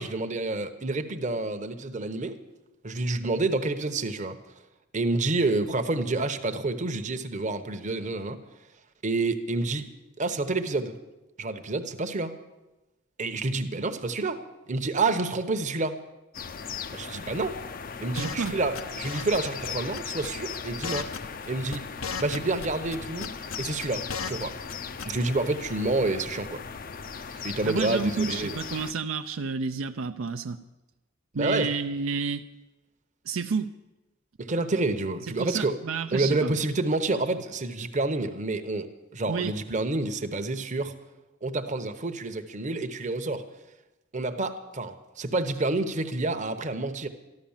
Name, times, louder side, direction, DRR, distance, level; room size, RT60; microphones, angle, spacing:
voice 1, 0.0-2.4 2.8-4.4 4.9-8.4 9.0-9.9 10.2-11.0 11.4-12.3 13.2-14.4 14.7-16.0 16.9-17.6 18.0-21.1 21.5-21.8 22.2-24.5 25.0-26.6 27.4-28.5 31.3-31.7 34.4-35.8 36.1-40.9 41.4-43.5 44.1-47.1, right 2 dB, 35° right, 8 dB, 0.9 m, -28 dB
sound 1, 16.3-28.9, left 6 dB, 45° left, 0.5 m, -38 dB
sound 2, 18.1-18.5 18.7-19.4 19.6-19.7 19.9-20.6 20.8-21.5 21.7-22.7 22.9-24.4 24.7-24.8 25.0-25.3, left 6 dB, 90° left, 0.9 m, -35 dB
voice 2, 18.1-18.6 27.3-30.6 31.3-32.4 33.3-33.8 35.4-36.5 39.3-39.5, right 5 dB, 75° right, 7 dB, 0.5 m, -30 dB
14.0 x 12.0 x 7.2 m, 1.0 s
head